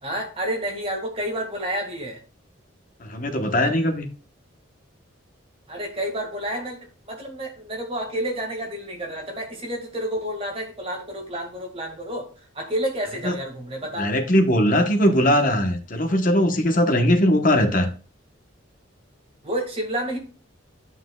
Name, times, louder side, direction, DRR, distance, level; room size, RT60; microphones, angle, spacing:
voice 1, 0.0-2.2 5.7-6.8 7.0-14.1 19.4-20.2, right 1 dB, 30° right, 1 dB, 1.8 m, -30 dB
voice 2, 3.0-4.1 13.2-13.3 14.0-17.9, equal, 40° left, 5 dB, 1.0 m, -20 dB
9.4 x 5.9 x 2.3 m, 0.38 s
head